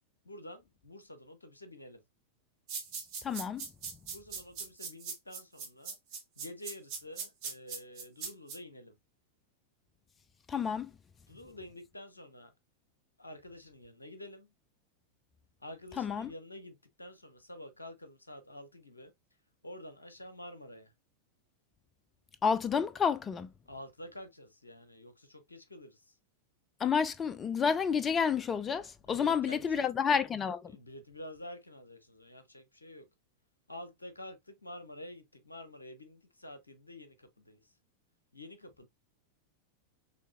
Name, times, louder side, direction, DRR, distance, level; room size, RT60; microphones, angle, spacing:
voice 1, 0.2-2.0 4.1-6.0 6.4-9.0 11.3-12.5 13.2-14.5 15.6-19.1 19.6-20.9 23.7-26.1 29.0-29.9 30.7-33.1 33.7-37.6 38.3-38.9, left 1 dB, 80° left, 0.8 m, -48 dB
sound 1, 2.7-8.6, right 5 dB, 50° right, 1.6 m, -40 dB
voice 2, 3.2-3.6 10.5-10.9 16.0-16.3 22.4-23.5 26.8-30.7, left 6 dB, 20° left, 0.3 m, -30 dB
6.2 x 2.8 x 2.4 m
figure-of-eight pair, 90°, 0 cm